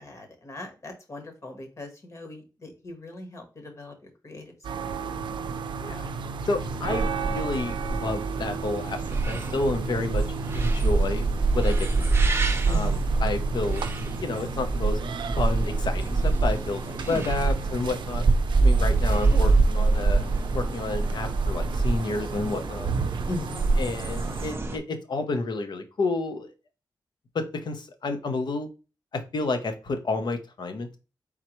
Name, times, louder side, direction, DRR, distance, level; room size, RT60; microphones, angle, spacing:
voice 1, 0.0-5.3 12.7-13.2 17.0-17.4 18.9-19.0 19.3-19.5 23.3-23.7, left 2 dB, 40° left, 4 dB, 1.2 m, -39 dB
sound 1, 4.6-24.5, right 5 dB, 80° right, 0.4 m, -35 dB
voice 2, 6.5-12.2 12.7-13.8 14.2-15.0 15.4-18.3 18.6-22.9 23.8-26.5 27.3-28.7 29.1-31.0, left 3 dB, 65° left, 7 dB, 0.8 m, -30 dB
sound 2, 6.6-24.8, right 3 dB, 30° right, 0.6 m, -25 dB
4.4 x 3.7 x 3.0 m, 0.32 s
wide cardioid pair, 120°, 8 cm